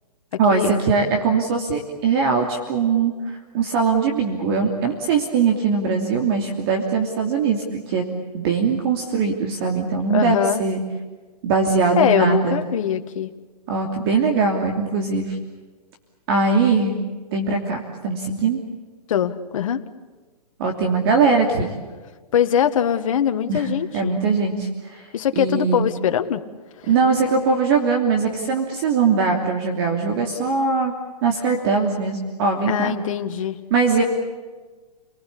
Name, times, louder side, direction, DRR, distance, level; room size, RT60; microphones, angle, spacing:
voice 1, 0.4-8.0 8.3-10.8 11.4-12.6 13.7-15.4 16.3-16.9 17.3-18.6 20.6-21.7 23.5-23.7 23.9-25.1 25.4-25.9 26.9-30.9 31.2-33.0 33.7-34.0, right 4 dB, 40° right, 3 dB, 3.0 m, -21 dB
voice 2, 10.1-10.6 12.0-13.3 19.1-19.8 22.3-24.1 25.1-26.4 26.8-26.9 32.7-33.6, left 9 dB, 55° left, 7 dB, 1.8 m, -22 dB
29.0 x 20.0 x 8.6 m, 1.3 s
hypercardioid pair, 155°, 20 cm